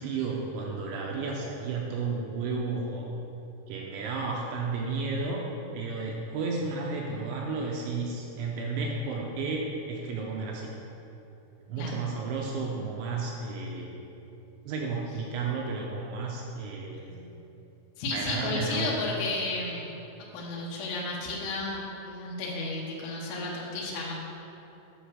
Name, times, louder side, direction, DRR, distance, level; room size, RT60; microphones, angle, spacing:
voice 1, 0.0-3.1 3.7-5.4 5.7-10.7 11.7-13.9 14.7-17.3 18.1-19.1, right 4 dB, 80° right, -1 dB, 2.7 m, -32 dB
voice 2, 18.0-19.9 20.3-24.1, left 2 dB, 70° left, -4 dB, 2.7 m, -33 dB
10.0 x 5.0 x 6.2 m, 2.9 s
omnidirectional pair, 6.0 m